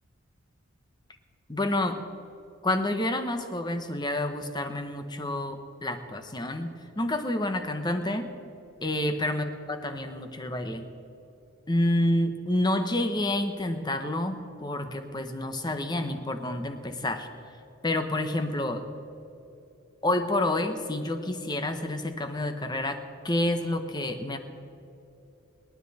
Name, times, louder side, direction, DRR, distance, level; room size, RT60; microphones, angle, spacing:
voice 1, 1.5-2.0 2.6-6.7 7.0-8.3 8.8-10.9 11.7-17.3 17.8-18.8 20.0-23.0 23.2-24.4, left 1 dB, 20° left, 7 dB, 1.0 m, -28 dB
25.5 x 10.5 x 4.2 m, 2.9 s
head